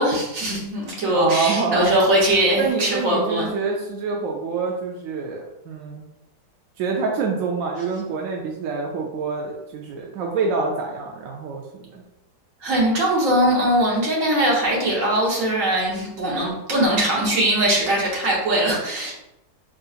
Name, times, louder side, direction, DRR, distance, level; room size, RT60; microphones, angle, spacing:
voice 1, 0.0-3.5 12.6-19.1, right 1 dB, 50° right, -3 dB, 1.4 m, -21 dB
voice 2, 1.1-1.9 2.6-6.0 6.8-12.0, right 4 dB, 70° right, 0 dB, 0.8 m, -26 dB
3.8 x 3.8 x 2.4 m, 0.88 s
omnidirectional pair, 1.9 m